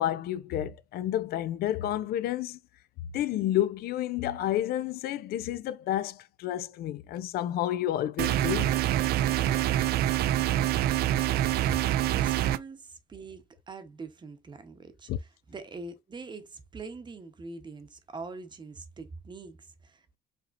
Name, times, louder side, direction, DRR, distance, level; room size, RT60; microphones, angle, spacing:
voice 1, 0.0-2.6 3.1-8.8 15.1-15.2, left 12 dB, 65° left, 0.4 m, -30 dB
sound 1, 8.2-12.6, right 13 dB, 70° right, 0.4 m, -26 dB
voice 2, 11.6-15.1 15.5-20.2, right 3 dB, 25° right, 0.9 m, -43 dB
5.1 x 2.9 x 2.5 m
cardioid pair, 110°, 17 cm